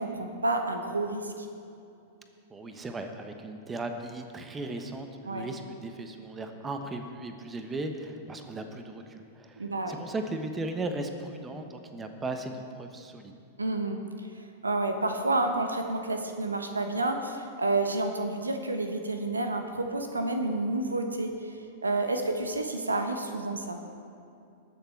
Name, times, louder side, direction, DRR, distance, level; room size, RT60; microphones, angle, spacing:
voice 1, 0.0-1.5 5.3-5.5 9.6-10.0 13.6-14.0 14.6-21.3 21.8-23.8, right 2 dB, 90° right, 5 dB, 1.0 m, -29 dB
voice 2, 2.5-13.3, right 2 dB, 15° right, 6 dB, 1.1 m, -37 dB
19.5 x 6.9 x 4.6 m, 2.6 s
figure-of-eight pair, 100°, 0 cm